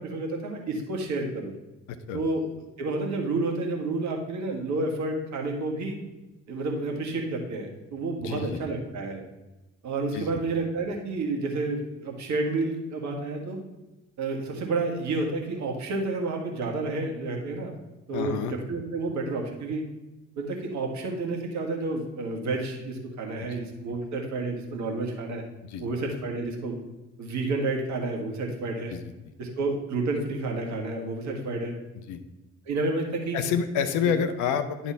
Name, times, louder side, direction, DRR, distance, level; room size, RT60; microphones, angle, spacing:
voice 1, 0.0-1.5 2.1-2.4 2.8-6.0 6.5-9.2 9.8-13.6 14.2-17.7 18.1-19.8 20.4-25.4 25.8-26.8 27.2-28.9 29.4-31.7 32.7-33.4 34.0-34.1, right 3 dB, 50° right, 1 dB, 1.6 m, -30 dB
voice 2, 1.9-2.2 8.2-8.6 10.1-10.4 18.1-18.5 23.4-23.6 25.6-25.8 28.9-29.0 32.1-32.2 33.3-34.9, left 7 dB, 55° left, 9 dB, 0.8 m, -28 dB
10.0 x 3.6 x 4.5 m, 1.0 s
figure-of-eight pair, 45°, 36 cm